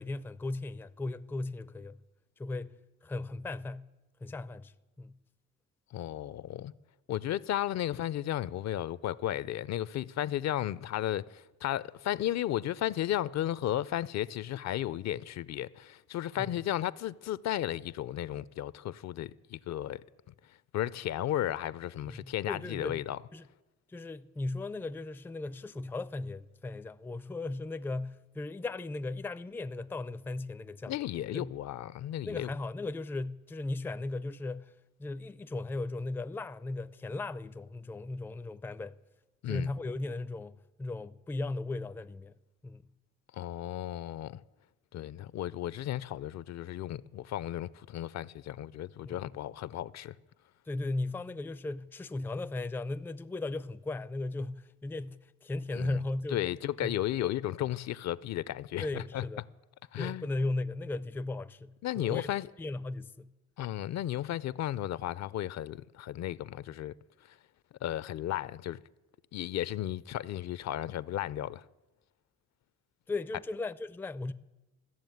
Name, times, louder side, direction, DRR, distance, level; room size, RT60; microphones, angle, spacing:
voice 1, 0.0-2.0 2.4-2.8 3.0-3.9 4.2-5.1 16.4-16.5 22.1-23.0 23.3-23.4 23.9-30.9 31.3-31.5 32.2-34.7 35.0-39.0 39.5-42.3 42.6-42.8 49.0-49.3 50.7-56.4 56.8-57.0 58.8-59.4 60.0-62.3 62.6-63.3 73.1-74.3, left 2 dB, 5° left, 0.4 m, -37 dB
voice 2, 5.9-6.7 7.1-20.0 20.7-23.2 30.9-32.5 39.4-39.7 43.3-44.4 44.9-50.1 55.8-56.0 56.3-59.2 59.9-60.3 61.8-62.5 63.6-66.9 67.8-68.8 69.3-71.6, left 12 dB, 60° left, 0.5 m, -34 dB
14.0 x 7.1 x 9.3 m
cardioid pair, 90°, 30 cm